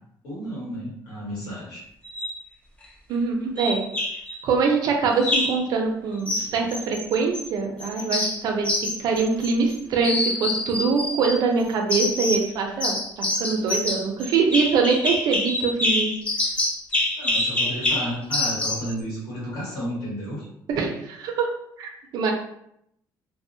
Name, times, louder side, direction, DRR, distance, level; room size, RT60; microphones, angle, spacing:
voice 1, 0.2-1.8 17.2-20.5, equal, 90° left, -6 dB, 1.5 m, -32 dB
sound 1, 2.0-2.4 3.6-4.4 5.2-5.6 6.3-7.5 7.8-9.7 10.0-11.4 11.9-12.5 12.8-18.9, left 1 dB, 15° left, 0.3 m, -26 dB
voice 2, 3.1-3.8 4.4-8.7 9.0-16.1 20.7-21.5 21.8-22.3, right 4 dB, 55° right, 2 dB, 0.5 m, -24 dB
2.6 x 2.0 x 2.6 m, 0.74 s
cardioid pair, 180°, 8 cm